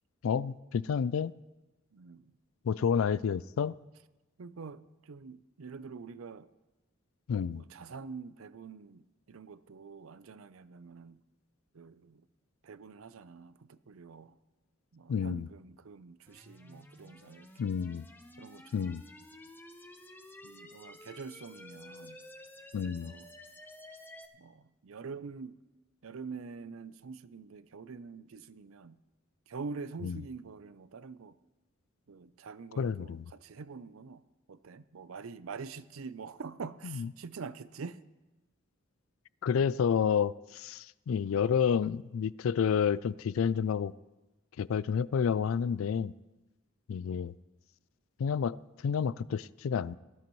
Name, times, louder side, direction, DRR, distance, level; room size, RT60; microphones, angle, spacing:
voice 1, 0.2-1.3 2.6-3.7 7.3-7.6 15.1-15.5 17.6-18.0 18.7-19.0 22.7-23.1 30.0-30.2 32.8-33.3 36.8-37.1 39.4-43.9 44.6-46.1 46.9-47.3 48.2-48.6 48.8-49.9, left 7 dB, 80° left, 0.3 m, -29 dB
voice 2, 1.9-2.3 4.4-6.5 7.5-9.0 9.3-11.2 11.7-12.2 12.6-14.4 14.9-17.7 18.4-19.0 20.4-22.2 22.7-23.3 24.4-25.6 26.0-29.0 29.5-31.4 32.1-34.2 34.5-38.0, right 5 dB, 85° right, 0.5 m, -45 dB
sound 1, 16.3-24.3, left 1 dB, 10° left, 0.8 m, -52 dB
18.5 x 13.0 x 3.1 m
head